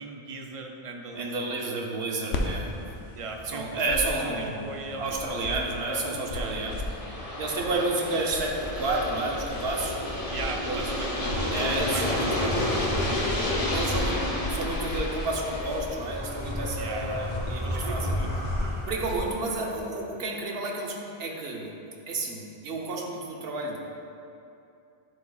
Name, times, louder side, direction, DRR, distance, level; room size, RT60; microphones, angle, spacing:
voice 1, 0.0-1.9 3.2-5.2 5.5-6.8 7.7-7.9 10.3-12.9 13.5-14.1 16.8-17.3 17.6-18.3, right 3 dB, 40° right, 2 dB, 0.5 m, -38 dB
voice 2, 1.1-2.7 3.5-6.8 7.4-10.0 10.7-11.0 11.5-12.7 13.7-14.2 14.5-18.1 18.8-21.7 22.1-23.8, right 2 dB, 70° right, 0 dB, 1.0 m, -31 dB
sound 1, 2.3-19.9, left 2 dB, 85° left, 0.9 m, -38 dB
Aircraft, 5.2-18.1, left 1 dB, 35° left, 0.9 m, -32 dB
sound 2, 8.5-19.3, left 1 dB, 10° left, 1.3 m, -35 dB
10.5 x 5.0 x 2.3 m, 2.7 s
omnidirectional pair, 1.1 m